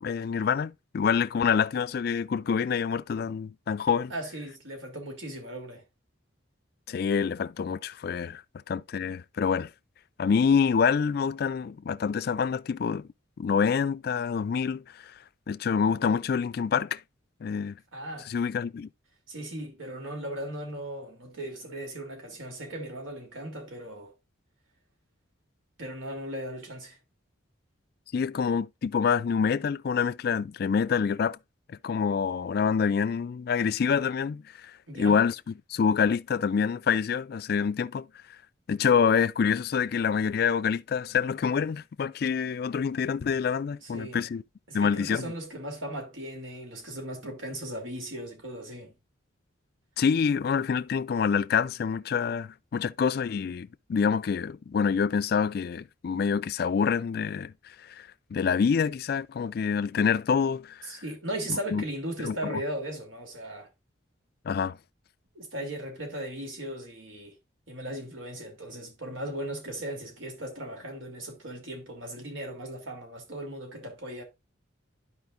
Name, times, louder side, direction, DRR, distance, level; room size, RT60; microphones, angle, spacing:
voice 1, 0.0-4.1 6.9-8.4 8.7-9.7 10.2-13.1 13.4-14.8 15.5-17.0 17.4-17.7 18.3-18.9 28.1-31.4 31.7-34.7 35.0-38.1 38.7-44.4 44.7-45.3 50.0-57.5 57.9-60.9 61.7-61.8 62.2-62.6 64.5-64.8, left 6 dB, 50° left, 0.3 m, -26 dB
voice 2, 4.1-5.8 17.9-18.3 19.3-24.1 25.8-27.0 34.9-35.2 43.8-44.2 44.7-48.9 60.8-63.7 65.3-67.3 67.7-74.2, right 1 dB, 85° right, 3.0 m, -37 dB
12.5 x 5.1 x 2.5 m
head